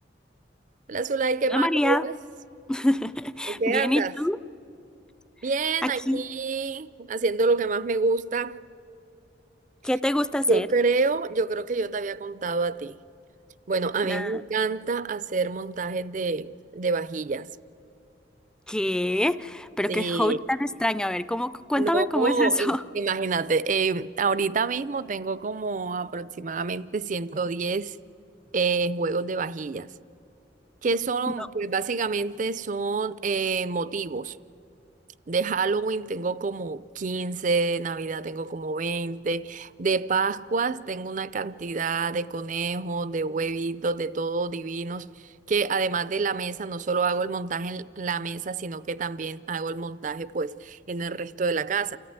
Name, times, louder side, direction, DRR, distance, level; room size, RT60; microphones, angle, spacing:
voice 1, 0.9-2.2 3.5-4.1 5.4-8.6 10.5-13.0 13.7-17.5 19.9-20.4 21.8-28.0 28.5-29.9 30.8-34.4 35.3-52.0, right 4 dB, 45° right, 0.5 m, -27 dB
voice 2, 1.5-2.0 2.7-4.4 5.8-6.2 9.8-10.7 14.0-14.4 18.7-22.8 31.4-31.5, left 1 dB, 5° left, 0.4 m, -26 dB
28.5 x 14.5 x 9.5 m
head